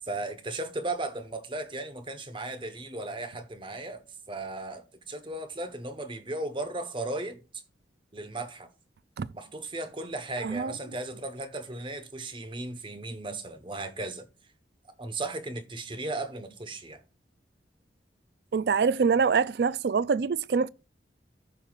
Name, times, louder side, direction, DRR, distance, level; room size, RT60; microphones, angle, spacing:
voice 1, 0.0-4.0 4.3-7.4 8.1-8.7 9.3-14.3 15.0-17.0, right 2 dB, 30° right, 1.1 m, -36 dB
voice 2, 10.4-10.7 18.5-20.7, right 5 dB, 65° right, 0.4 m, -25 dB
15.0 x 5.8 x 2.5 m
head